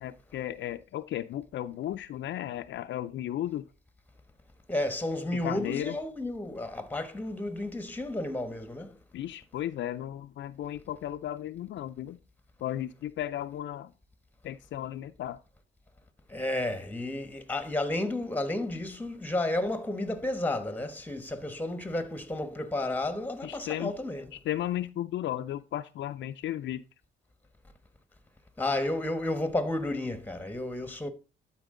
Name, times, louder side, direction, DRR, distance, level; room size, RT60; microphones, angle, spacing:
voice 1, 0.0-3.7 5.4-6.0 9.1-12.2 12.6-13.9 14.4-15.4 23.4-24.0 24.3-26.8, left 12 dB, 65° left, 0.5 m, -35 dB
voice 2, 4.7-9.0 16.3-24.3 28.6-31.1, left 1 dB, 10° left, 1.2 m, -32 dB
11.5 x 4.6 x 3.7 m
cardioid pair, 90°, 20 cm